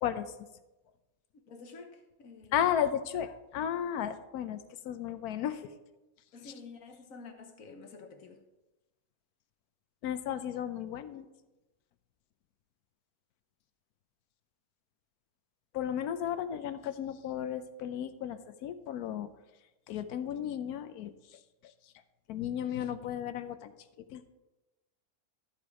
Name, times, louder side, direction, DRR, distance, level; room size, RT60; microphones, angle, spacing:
voice 1, 1.5-2.6 6.3-8.4, left 4 dB, 60° left, 5 dB, 1.4 m, -49 dB
voice 2, 2.5-4.6 4.8-5.7 10.0-11.3 15.7-19.3 19.9-21.4 22.3-23.7 24.1-24.3, left 9 dB, 80° left, 12 dB, 1.1 m, -34 dB
13.0 x 5.1 x 4.7 m, 1.0 s
omnidirectional pair, 1.6 m